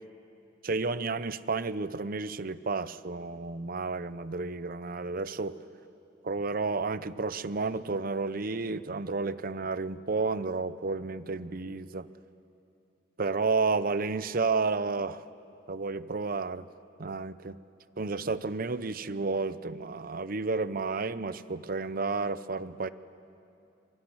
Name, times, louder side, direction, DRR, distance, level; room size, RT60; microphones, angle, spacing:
voice 1, 0.6-5.6 6.2-12.1 13.2-15.2 15.7-16.7 17.0-17.6 18.0-22.9, right 4 dB, 50° right, 14 dB, 0.8 m, -31 dB
27.0 x 22.5 x 9.8 m, 2.7 s
head